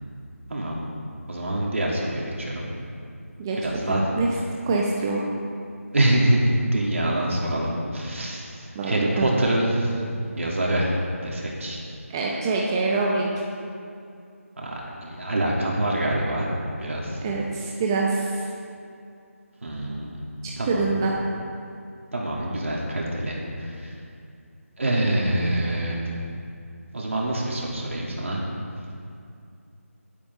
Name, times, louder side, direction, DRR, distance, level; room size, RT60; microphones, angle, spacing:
voice 1, 0.5-0.9 1.3-2.7 3.6-4.0 5.9-9.9 10.4-11.8 14.6-16.5 16.8-17.2 19.6-20.2 20.6-21.0 22.1-23.9 24.8-26.0 26.9-28.4, right 1 dB, 60° right, -3 dB, 2.9 m, -25 dB
voice 2, 3.9-4.3 4.7-5.2 8.7-9.4 12.1-13.3 17.2-18.5 20.4-21.2, right 3 dB, 15° right, -3 dB, 0.7 m, -25 dB
17.5 x 8.5 x 3.7 m, 2.4 s
figure-of-eight pair, 165°, 8 cm